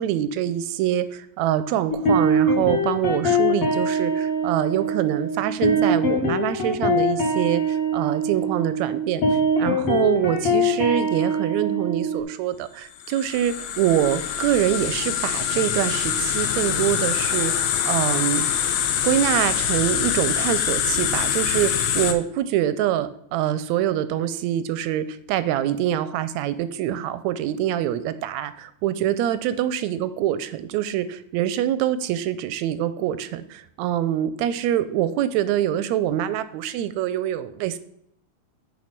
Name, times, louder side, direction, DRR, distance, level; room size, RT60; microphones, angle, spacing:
voice 1, 0.0-9.2 9.6-18.4 19.0-28.5 28.8-37.8, right 11 dB, 80° right, 14 dB, 1.7 m, -25 dB
sound 1, 1.9-12.2, right 1 dB, 55° left, 2.4 m, -22 dB
sound 2, 13.0-22.1, left 9 dB, 70° left, 1.9 m, -24 dB
9.6 x 4.8 x 5.8 m, 0.74 s
omnidirectional pair, 3.5 m